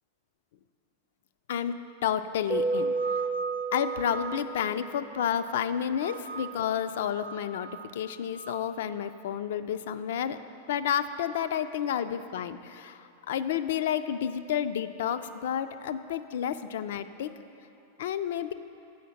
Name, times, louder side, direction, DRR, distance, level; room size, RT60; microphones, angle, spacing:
voice 1, 2.0-3.3 3.7-10.4 10.7-17.3 18.0-18.5, left 9 dB, 55° left, 12 dB, 0.3 m, -30 dB
Keyboard (musical), 2.5-5.0, right 4 dB, 25° right, 0.5 m, -31 dB
sound 1, 2.7-5.6 6.0-6.7 7.1-8.7, right 4 dB, 70° right, 0.3 m, -41 dB
7.1 x 5.6 x 7.4 m, 2.7 s
figure-of-eight pair, 90°, 0 cm